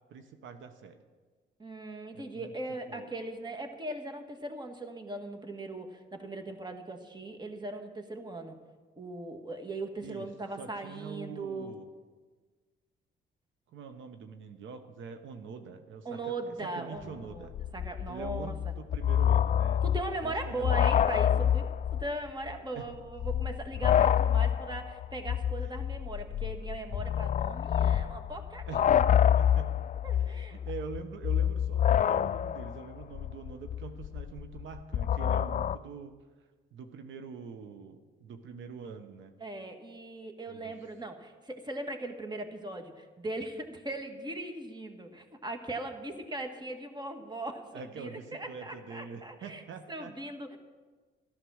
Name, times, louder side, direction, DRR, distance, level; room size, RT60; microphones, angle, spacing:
voice 1, 0.1-1.0 2.1-2.5 2.9-3.1 10.0-10.3 10.6-11.9 13.7-17.5 18.1-19.9 20.2-20.9 21.2-21.6 22.7-22.9 28.7-28.8 29.3-29.7 30.2-36.1 36.7-39.3 40.5-40.7 47.7-50.1, right 6 dB, 75° right, 8 dB, 1.0 m, -44 dB
voice 2, 1.6-8.6 9.0-11.7 16.1-18.7 19.8-28.8 30.0-30.6 39.4-49.6 49.9-50.6, right 2 dB, 20° right, 5 dB, 1.8 m, -39 dB
sound 1, 17.0-17.1 17.3-22.2 22.5-22.6 23.1-35.8, left 9 dB, 40° left, 0.4 m, -27 dB
13.0 x 13.0 x 6.4 m, 1.4 s
cardioid pair, 90°, 20 cm